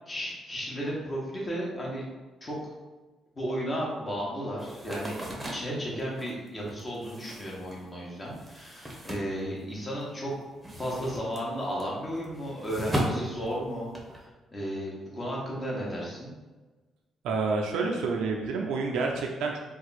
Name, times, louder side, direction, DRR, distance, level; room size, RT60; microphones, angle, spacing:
voice 1, 0.1-2.0 2.4-2.7 3.3-10.3 10.8-13.9 14.5-16.3, equal, 30° left, -4 dB, 1.2 m, -34 dB
sound 1, 4.6-10.0 10.3-14.2, equal, 15° right, 0.8 m, -37 dB
voice 2, 17.2-19.6, right 4 dB, 80° right, 1 dB, 0.4 m, -28 dB
2.7 x 2.3 x 4.1 m, 1.2 s
supercardioid pair, 70°, 0 cm